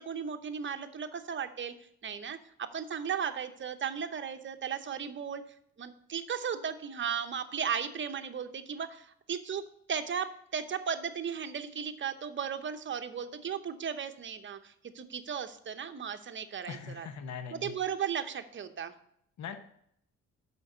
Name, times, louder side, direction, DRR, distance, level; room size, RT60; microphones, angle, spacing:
voice 1, 0.0-1.7 2.0-5.4 5.8-9.6 9.9-10.3 10.5-17.1 17.5-18.9, right 7 dB, 40° right, 8 dB, 0.9 m, -36 dB
voice 2, 16.7-17.7 19.4-19.6, left 6 dB, 65° left, 8 dB, 1.0 m, -40 dB
6.3 x 5.3 x 6.8 m, 0.70 s
cardioid pair, 90°, 30 cm